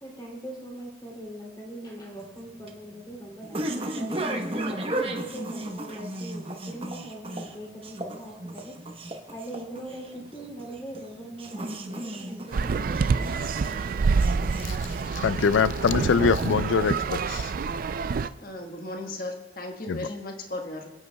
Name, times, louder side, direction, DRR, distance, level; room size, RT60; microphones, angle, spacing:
voice 1, 0.0-8.7 9.3-13.1, right 1 dB, 20° left, -2 dB, 2.7 m, -41 dB
sound 1, 2.2-15.8, right 1 dB, 30° right, 1.0 m, -35 dB
sound 2, 12.5-18.3, right 5 dB, 45° right, 0.3 m, -27 dB
voice 2, 15.1-17.5 19.9-20.0, left 5 dB, 80° left, 16 dB, 0.4 m, -24 dB
voice 3, 18.4-20.9, left 2 dB, 50° left, 3 dB, 1.4 m, -36 dB
28.5 x 9.6 x 2.3 m, 1.2 s
head